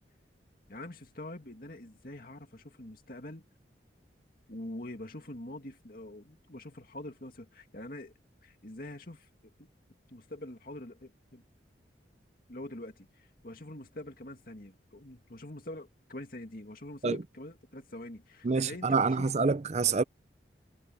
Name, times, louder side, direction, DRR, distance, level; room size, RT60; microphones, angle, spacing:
voice 1, 0.7-3.5 4.5-8.1 8.4-9.7 10.1-11.4 12.5-19.3, left 1 dB, 50° left, 2.2 m, -45 dB
voice 2, 18.4-20.0, right 4 dB, 40° right, 0.5 m, -27 dB
head